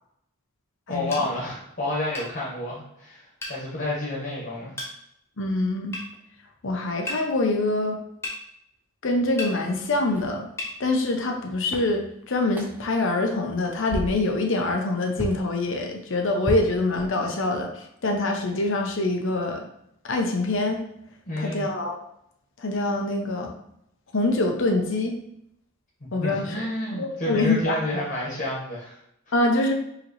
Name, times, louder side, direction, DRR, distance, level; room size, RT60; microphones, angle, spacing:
voice 1, 0.9-3.2 3.5-4.7 21.3-21.6 26.2-29.0, left 1 dB, 45° left, -5 dB, 1.2 m, -29 dB
sound 1, 1.1-1.3 2.1-2.3 3.4-3.6 4.8-4.9 5.9-6.1 7.1-7.2 8.2-8.4 9.4-9.5 10.6-10.7, left 2 dB, 10° left, 0.8 m, -33 dB
voice 2, 5.4-6.0 6.6-8.0 9.0-10.5 10.8-19.6 20.0-20.8 21.4-22.0 22.6-23.5 24.1-25.1 26.1-26.5 26.9-27.8 29.3-29.7, left 2 dB, 60° left, 3 dB, 0.7 m, -25 dB
sound 2, 10.1-10.4 11.3-11.4 11.7-12.0 12.5-12.9 13.4-13.6 13.9-14.3 15.2-15.5 16.4-17.4, equal, 10° right, 0.5 m, -32 dB
4.9 x 3.0 x 3.0 m, 0.77 s
head